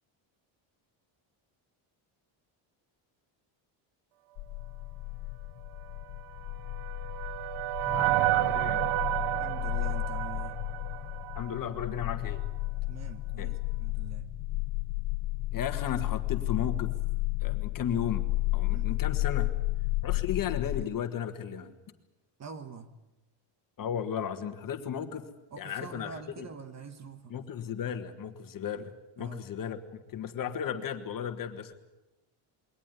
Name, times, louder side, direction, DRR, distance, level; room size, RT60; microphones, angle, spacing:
sound 1, 4.4-20.8, left 21 dB, 90° left, 0.7 m, -33 dB
sound 2, 6.3-11.7, right 16 dB, 75° right, 0.7 m, -30 dB
voice 1, 7.9-8.9 11.3-12.4 13.4-13.5 15.5-16.9 17.4-18.3 18.5-19.5 20.0-21.7 23.8-25.3 25.6-26.5 27.3-31.7, left 8 dB, 40° left, 8 dB, 1.7 m, -35 dB
voice 2, 9.4-10.7 12.8-14.3 18.7-18.9 22.4-22.9 25.5-27.3 29.2-29.5, right 5 dB, 30° right, 11 dB, 1.4 m, -44 dB
22.0 x 18.5 x 9.8 m, 0.98 s
cardioid pair, 175°, 50 cm